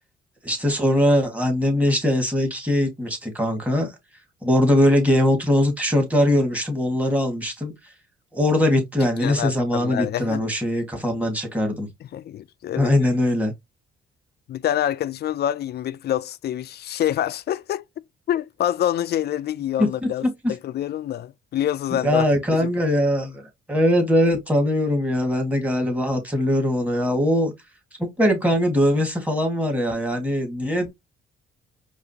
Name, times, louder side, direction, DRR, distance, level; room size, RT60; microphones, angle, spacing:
voice 1, 0.4-3.9 4.4-7.7 8.3-11.9 12.8-13.5 19.8-20.1 20.4-20.5 21.9-27.5 28.0-30.9, left 1 dB, 5° right, 1.8 m, -21 dB
voice 2, 9.2-10.4 12.1-12.9 14.5-17.8 18.3-22.2 22.5-22.7, left 11 dB, 55° left, 0.4 m, -26 dB
4.8 x 2.6 x 2.8 m
cardioid pair, 90°, 20 cm